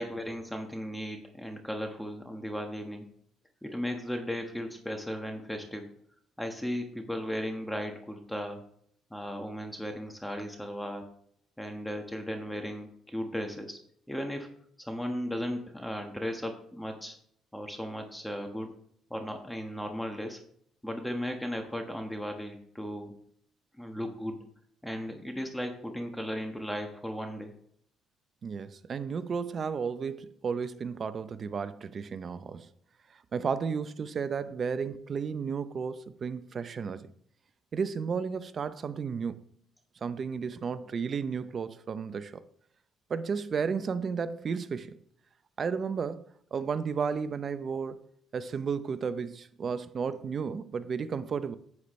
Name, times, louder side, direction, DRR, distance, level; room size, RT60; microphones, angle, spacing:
voice 1, 0.0-3.1 3.6-5.9 6.4-8.6 9.1-11.1 11.6-13.8 14.1-14.5 14.8-17.2 17.5-18.7 19.1-20.4 20.8-23.2 23.8-24.4 24.8-27.5, equal, 5° left, 1.4 m, -36 dB
voice 2, 28.4-32.7 33.3-37.1 37.7-39.4 40.0-42.4 43.1-45.0 45.6-48.0 48.3-51.5, right 6 dB, 45° right, 0.7 m, -33 dB
9.5 x 8.4 x 3.2 m
supercardioid pair, 80°, 0 cm